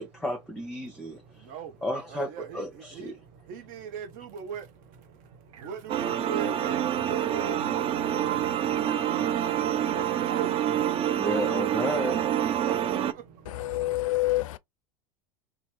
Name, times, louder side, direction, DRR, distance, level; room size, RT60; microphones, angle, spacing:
voice 1, 0.0-1.4 1.8-3.1 11.1-12.2, equal, 5° left, 0.9 m, -32 dB
voice 2, 0.8-11.3 12.2-14.0, right 7 dB, 55° right, 1.0 m, -41 dB
sound 1, 5.3-10.5, right 6 dB, 85° right, 0.5 m, -47 dB
sound 2, 5.9-13.1, right 10 dB, 35° right, 0.4 m, -27 dB
voice 3, 13.5-14.6, left 17 dB, 80° left, 0.4 m, -27 dB
2.9 x 2.3 x 3.1 m
hypercardioid pair, 90°, 17 cm